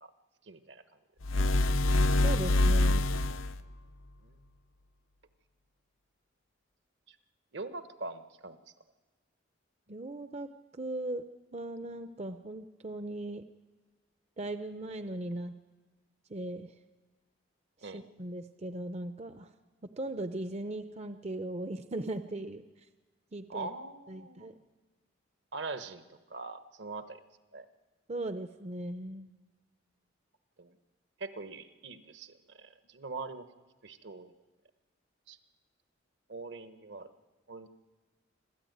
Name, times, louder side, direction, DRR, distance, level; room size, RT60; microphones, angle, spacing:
voice 1, 0.4-0.8 1.4-1.5 4.2-4.3 7.1-7.2 7.5-8.6 17.8-18.0 23.5-24.5 25.5-27.2 27.5-27.7 30.6-30.7 31.2-33.5 33.8-34.3 35.3-35.4 36.3-37.1 37.5-37.7, right 3 dB, 65° right, 10 dB, 1.1 m, -42 dB
sound 1, 1.2-3.6, left 1 dB, 85° left, 0.7 m, -25 dB
voice 2, 2.1-3.1 9.9-13.4 14.4-15.5 16.3-16.8 17.8-19.5 20.0-22.6 23.3-23.7 24.1-24.6 28.1-29.3, right 1 dB, 35° right, 9 dB, 0.6 m, -38 dB
25.5 x 14.0 x 9.3 m, 1.3 s
head